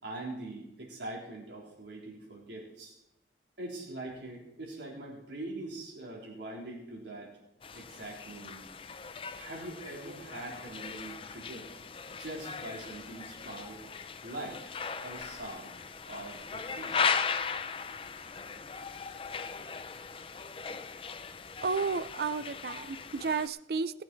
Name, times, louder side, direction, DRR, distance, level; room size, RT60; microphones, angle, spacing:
voice 1, 0.0-3.0 3.6-7.3 7.7-8.7 9.3-11.7 12.2-13.8 14.2-14.7 15.0-15.8 16.1-17.0, right 2 dB, 80° right, -2 dB, 4.2 m, -43 dB
sound 1, 7.6-23.5, left 6 dB, 30° left, 0.5 m, -38 dB
voice 2, 21.6-24.0, right 4 dB, 60° right, 15 dB, 0.5 m, -32 dB
19.0 x 8.6 x 4.6 m, 0.85 s
head